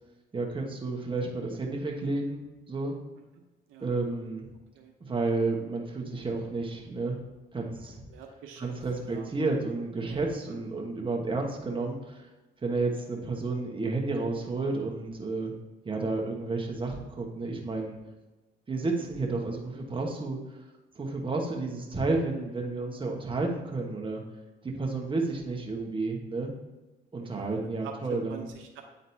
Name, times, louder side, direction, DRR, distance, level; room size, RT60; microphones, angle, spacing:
voice 1, 0.3-2.4 2.7-2.9 3.8-4.5 5.0-7.2 7.5-8.0 8.6-12.3 12.6-15.5 15.8-18.0 18.7-20.4 20.9-24.2 24.6-26.5 27.1-28.5, right 3 dB, 25° right, 0 dB, 1.3 m, -31 dB
voice 2, 8.1-8.7 9.0-9.3 10.1-10.7 27.2-28.8, right 7 dB, 85° right, 3 dB, 0.8 m, -45 dB
9.1 x 4.0 x 2.8 m, 1.1 s
cardioid pair, 90°, 20 cm